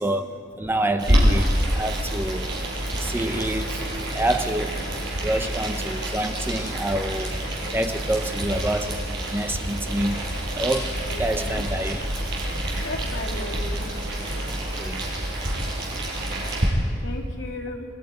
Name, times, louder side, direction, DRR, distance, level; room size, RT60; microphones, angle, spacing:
voice 1, 0.0-2.5 3.0-3.8 4.1-4.8 5.2-7.4 7.7-10.2 10.6-12.0 14.5-15.1, right 1 dB, 10° right, 7 dB, 0.8 m, -27 dB
Boiling, 1.0-16.7, right 1 dB, 60° right, 5.8 m, -27 dB
voice 2, 11.0-11.6 12.8-13.8 17.0-17.9, left 2 dB, 80° left, 0 dB, 3.1 m, -35 dB
28.5 x 20.5 x 5.3 m, 2.1 s
head